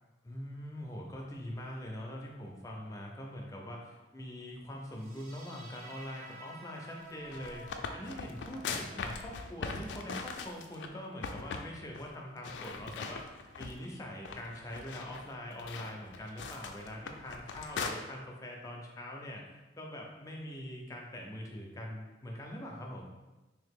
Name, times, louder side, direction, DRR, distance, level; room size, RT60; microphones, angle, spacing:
voice 1, 0.2-7.6 7.9-13.2 13.6-19.4 19.8-23.1, left 1 dB, 20° left, -1 dB, 0.5 m, -43 dB
sound 1, 4.9-11.9, right 1 dB, 50° right, 0.6 m, -54 dB
sound 2, 7.1-10.9 11.2-11.7 11.9-12.1 12.4-13.9 14.2-17.9, left 5 dB, 80° left, 0.3 m, -40 dB
3.3 x 2.8 x 3.6 m, 1.1 s
head